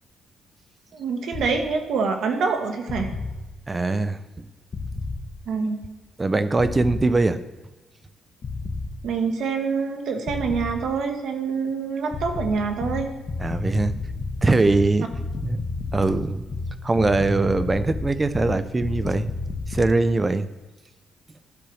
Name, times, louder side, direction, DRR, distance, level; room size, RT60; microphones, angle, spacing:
voice 1, 0.9-3.1 5.5-5.8 9.0-13.1, right 5 dB, 70° right, 5 dB, 1.2 m, -26 dB
sound 1, 1.3-1.5 2.9-3.3 4.7-5.2 6.6-7.1 8.4-8.9 10.3-10.8 12.1-20.0, left 3 dB, 40° left, 1.1 m, -30 dB
voice 2, 3.7-4.5 6.2-7.4 13.4-14.0 14.4-15.1 15.4-15.6 15.9-16.4 16.8-19.3 19.7-20.5, right 3 dB, 20° right, 13 dB, 0.5 m, -22 dB
11.5 x 4.6 x 6.3 m, 1.2 s
cardioid pair, 115°, 0 cm